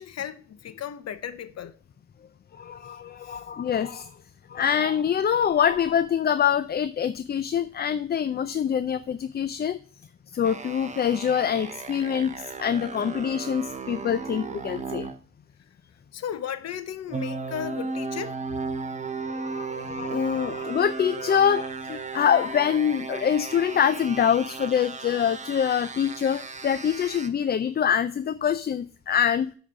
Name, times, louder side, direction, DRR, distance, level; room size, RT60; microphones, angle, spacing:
voice 1, 0.0-1.7 3.2-3.4 16.1-18.4, left 9 dB, 60° left, 0.9 m, -35 dB
voice 2, 2.6-4.1 4.5-9.8 10.3-15.1 19.3-29.5, left 8 dB, 35° left, 0.4 m, -25 dB
sound 1, 10.4-15.2 17.1-27.3, right 4 dB, 25° right, 0.9 m, -35 dB
7.3 x 5.1 x 5.8 m
cardioid pair, 90°, 30 cm